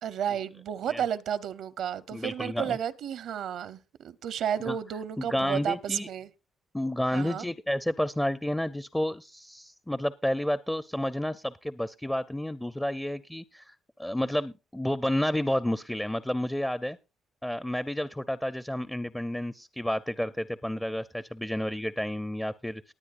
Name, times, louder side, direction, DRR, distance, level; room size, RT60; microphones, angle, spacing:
voice 1, 0.0-6.3 7.1-7.4, right 9 dB, 75° right, 0.7 m, -32 dB
voice 2, 2.1-2.8 4.6-4.8 5.2-6.1 6.7-17.0 17.4-22.9, left 1 dB, 5° left, 0.5 m, -30 dB
19.5 x 9.1 x 2.5 m
cardioid pair, 90°, 0 cm